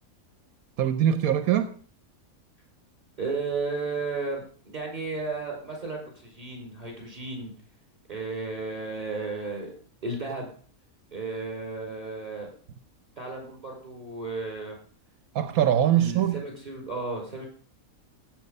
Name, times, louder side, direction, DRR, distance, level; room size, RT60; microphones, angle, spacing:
voice 1, 0.8-1.7 15.3-16.4, right 10 dB, 80° right, 11 dB, 1.3 m, -22 dB
voice 2, 3.2-7.5 8.1-9.7 10.0-10.5 11.1-12.5 13.2-14.8 16.0-17.5, right 3 dB, 30° right, 1 dB, 5.6 m, -34 dB
16.5 x 8.1 x 5.3 m, 0.43 s
omnidirectional pair, 1.5 m